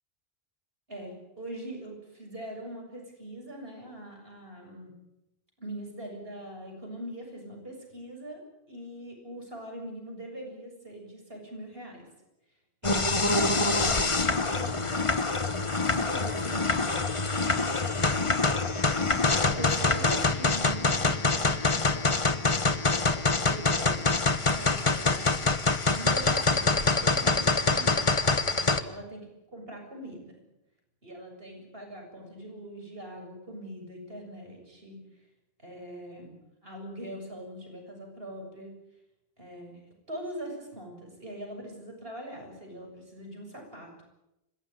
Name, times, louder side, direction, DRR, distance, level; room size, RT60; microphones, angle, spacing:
voice 1, 0.9-4.9 5.6-12.1 12.8-15.0 15.9-16.8 17.4-18.1 19.4-22.4 23.5-24.0 24.5-25.5 25.9-28.2 28.8-29.2 29.5-30.4 31.0-35.0 35.6-36.4 36.6-38.7 39.4-39.8 40.1-44.0, right 1 dB, 70° right, 2 dB, 7.6 m, -42 dB
sound 1, 12.8-28.8, left 3 dB, 30° left, 1.3 m, -25 dB
27.0 x 16.0 x 9.8 m, 0.88 s
omnidirectional pair, 1.0 m